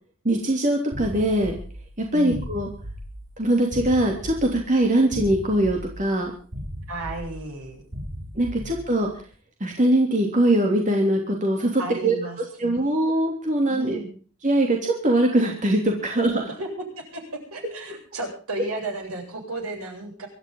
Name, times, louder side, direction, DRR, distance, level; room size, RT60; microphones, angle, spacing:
voice 1, 0.2-1.5 2.0-2.7 3.4-6.3 8.3-9.1 9.6-12.2 12.6-14.0 14.4-16.5, right 1 dB, 35° right, 1 dB, 3.0 m, -22 dB
sound 1, 0.9-9.2, equal, 60° right, 3.2 m, -37 dB
voice 2, 2.1-2.4 6.9-7.8 8.6-8.8 11.8-13.1 13.7-14.1 16.6-16.7 17.0-20.3, right 2 dB, 75° right, 1 dB, 7.9 m, -34 dB
24.5 x 13.0 x 3.9 m, 0.39 s
head